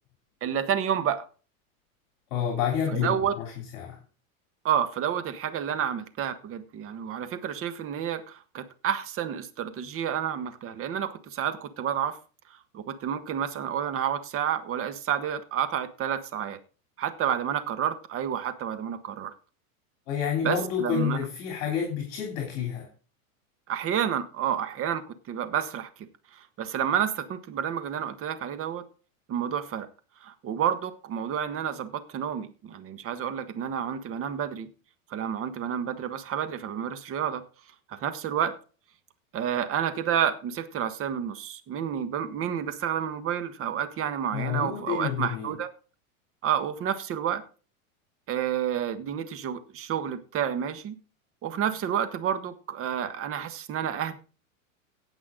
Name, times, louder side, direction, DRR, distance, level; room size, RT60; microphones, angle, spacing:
voice 1, 0.4-1.2 2.9-3.4 4.6-12.2 12.5-16.6 17.0-19.3 20.4-21.2 23.7-25.0 25.3-28.8 29.3-29.9 30.2-34.7 35.1-37.4 37.9-38.6 39.3-45.7 46.4-47.4 48.3-51.0 51.4-54.2, right 9 dB, 30° right, 1.4 m, -30 dB
voice 2, 2.3-4.0 20.1-22.9 44.3-45.5, left 8 dB, 50° left, 3.3 m, -29 dB
17.5 x 6.0 x 3.8 m
hypercardioid pair, 120°, 42 cm